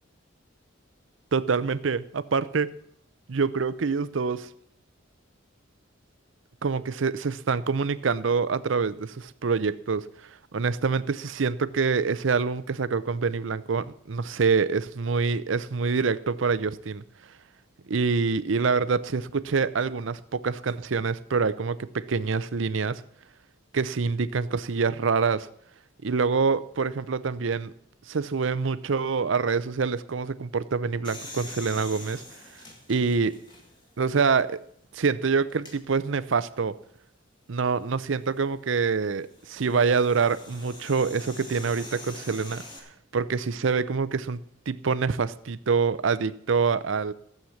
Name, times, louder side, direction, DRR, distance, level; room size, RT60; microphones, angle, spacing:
voice 1, 1.3-2.7 3.3-4.5 6.6-17.0 17.9-23.0 23.7-25.5 26.0-27.7 28.1-32.2 32.9-33.3 34.0-34.6 34.9-36.7 37.5-42.6 43.1-44.4 44.7-47.1, right 5 dB, 70° right, 0.6 m, -26 dB
sound 1, 31.0-34.0 34.5-34.6 35.5-35.8 37.9-42.8, left 2 dB, 25° left, 2.2 m, -45 dB
13.5 x 7.8 x 7.2 m
head